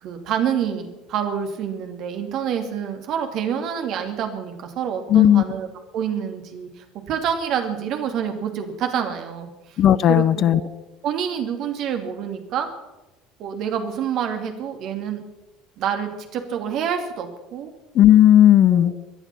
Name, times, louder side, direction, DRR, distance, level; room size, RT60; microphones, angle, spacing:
voice 1, 0.0-5.7 5.9-9.5 10.1-10.7 11.0-12.7 13.4-15.2 15.8-17.7 18.7-18.9, right 8 dB, 50° right, 5 dB, 2.6 m, -27 dB
voice 2, 5.1-5.4 9.8-10.6 17.9-18.9, left 11 dB, 45° left, 19 dB, 0.6 m, -14 dB
23.5 x 10.0 x 5.9 m, 1.0 s
figure-of-eight pair, 65°, 0 cm